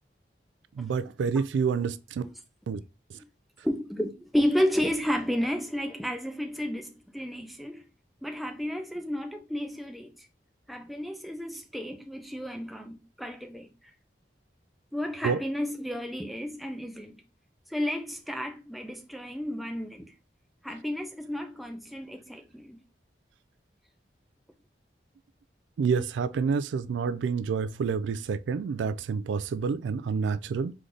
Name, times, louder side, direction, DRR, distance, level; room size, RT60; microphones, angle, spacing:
voice 1, 0.8-2.2 2.7-2.8 15.2-15.4 25.8-30.7, right 5 dB, 90° right, 0.3 m, -28 dB
voice 2, 3.6-7.8 8.2-10.1 10.7-13.7 14.9-17.2 17.7-20.1 20.6-22.8, equal, ahead, 0.5 m, -32 dB
3.8 x 3.3 x 3.8 m
head